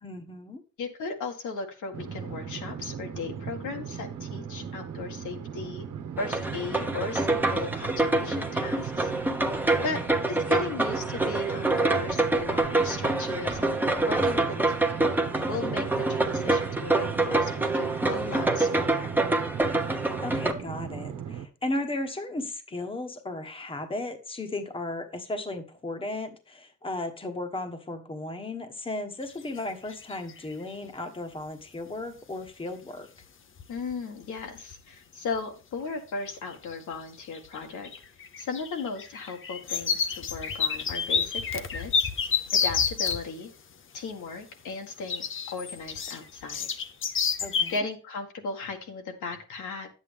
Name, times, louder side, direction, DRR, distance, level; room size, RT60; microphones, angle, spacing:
voice 1, 0.0-0.6 9.7-10.0 20.2-33.1 47.4-47.7, left 2 dB, 20° left, 5 dB, 1.3 m, -35 dB
voice 2, 0.8-5.9 6.2-9.1 9.8-10.0 10.3-13.8 14.1-14.4 14.8-15.1 15.5-19.1 33.7-37.9 38.4-42.1 42.5-43.5 43.9-45.2 45.5-46.7 47.7-49.9, left 4 dB, 75° left, 3 dB, 1.9 m, -36 dB
sound 1, 1.9-21.5, right 7 dB, 75° right, 1.2 m, -38 dB
sound 2, 6.2-20.5, right 2 dB, 5° right, 1.1 m, -26 dB
sound 3, 29.4-29.6 29.9-30.5 32.5-32.6 33.2-33.3 33.6-33.9 34.2-34.8 35.3-35.4 36.5-37.0 37.2-43.2 45.1-47.8, left 6 dB, 45° left, 0.9 m, -29 dB
10.0 x 8.3 x 3.5 m, 0.34 s
cardioid pair, 90°, 30 cm